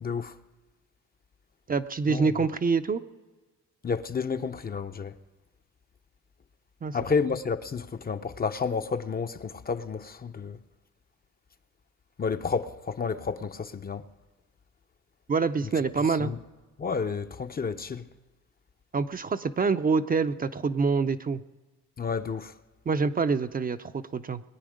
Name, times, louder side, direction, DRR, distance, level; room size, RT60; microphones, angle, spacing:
voice 1, 0.0-0.3 2.1-2.4 3.8-5.1 6.9-10.6 12.2-14.1 16.2-16.4 16.8-18.0 22.0-22.5, left 5 dB, 30° left, 0.7 m, -30 dB
voice 2, 1.7-3.0 6.8-7.0 15.3-16.3 18.9-21.4 22.9-24.4, right 4 dB, 30° right, 0.6 m, -26 dB
21.5 x 9.2 x 5.1 m
cardioid pair, 90°, 30 cm